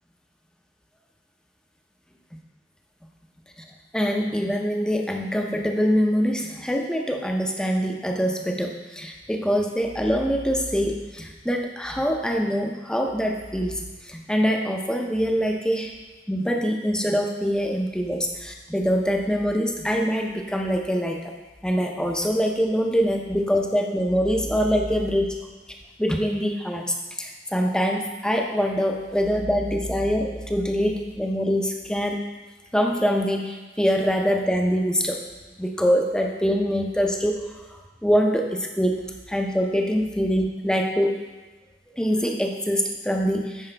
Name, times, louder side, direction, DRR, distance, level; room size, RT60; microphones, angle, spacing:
voice 1, 3.9-15.9 16.3-21.3 21.6-25.4 26.0-32.2 32.7-35.2 35.6-39.0 39.3-41.1 42.0-43.7, equal, 5° left, 2 dB, 0.6 m, -24 dB
9.8 x 4.8 x 3.3 m, 1.3 s
head